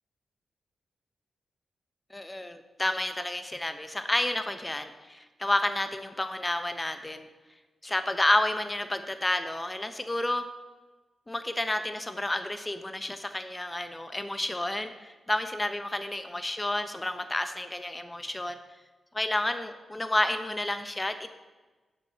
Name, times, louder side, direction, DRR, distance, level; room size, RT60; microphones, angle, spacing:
voice 1, 2.1-7.3 7.8-10.5 11.3-18.6 19.1-21.3, left 1 dB, 20° left, 9 dB, 0.9 m, -30 dB
7.9 x 6.1 x 5.8 m, 1.2 s
cardioid pair, 65°, 0 cm